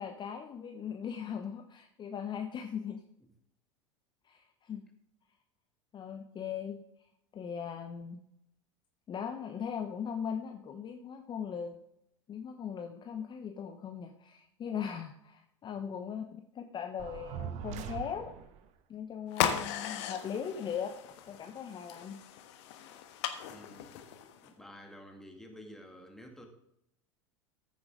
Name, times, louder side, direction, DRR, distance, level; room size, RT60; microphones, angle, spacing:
voice 1, 0.0-3.0 4.2-4.9 5.9-6.8 7.3-8.2 9.1-11.8 12.3-18.3 18.9-21.0 21.3-22.2, left 7 dB, 30° left, 5 dB, 0.9 m, -39 dB
sound 1, 17.0-18.7, right 9 dB, 45° right, 1.0 m, -41 dB
flare fire real dull crack, 19.3-24.5, left 10 dB, 60° left, 1.2 m, -37 dB
voice 2, 23.4-24.0 24.4-26.5, equal, 5° left, 3 dB, 2.1 m, -51 dB
14.0 x 7.0 x 3.8 m, 0.77 s
figure-of-eight pair, 85°, 16 cm